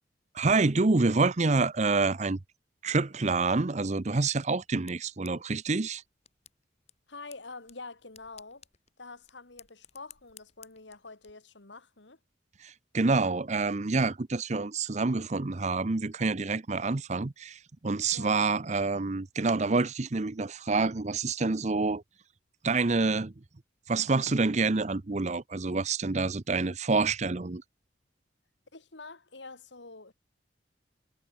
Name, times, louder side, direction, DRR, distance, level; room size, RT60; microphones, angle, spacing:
voice 1, 0.3-2.4 2.8-6.0 12.6-22.0 22.6-23.3 23.9-27.6, right 3 dB, 40° right, 0.7 m, -27 dB
sound 1, 3.5-11.3, left 10 dB, 35° left, 4.7 m, -58 dB
voice 2, 7.1-8.7 9.0-12.2 18.1-18.3 28.7-30.1, left 3 dB, 80° left, 2.6 m, -46 dB
head